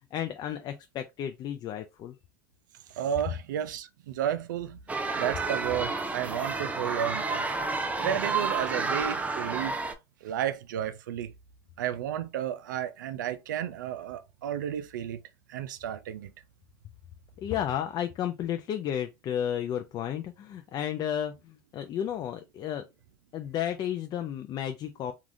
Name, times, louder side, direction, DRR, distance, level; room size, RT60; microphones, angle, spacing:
voice 1, 0.1-2.2 17.4-22.8 23.3-25.1, left 10 dB, 40° left, 0.4 m, -32 dB
voice 2, 2.9-4.8 5.2-7.4 8.0-9.8 10.2-11.3 11.8-15.2 15.5-16.3, right 10 dB, 85° right, 0.4 m, -32 dB
sound 1, 4.9-9.9, right 4 dB, 15° right, 0.5 m, -30 dB
3.3 x 2.4 x 2.5 m
hypercardioid pair, 90°, 10 cm